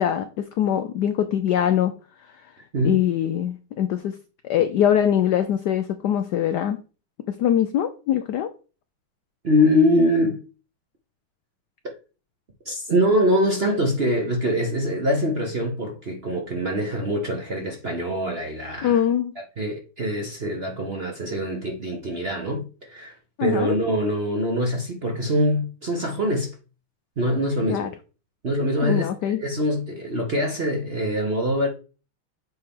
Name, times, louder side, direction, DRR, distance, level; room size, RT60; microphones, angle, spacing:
voice 1, 0.0-1.9 2.8-4.2 4.4-6.8 7.3-8.5 18.8-19.3 23.4-23.8 27.7-27.9 28.8-29.4, left 10 dB, 80° left, 0.9 m, -22 dB
voice 2, 9.4-10.4 12.6-19.0 19.6-26.5 27.2-27.9 28.4-31.7, equal, 40° right, 0.9 m, -24 dB
7.8 x 4.3 x 3.6 m
omnidirectional pair, 2.4 m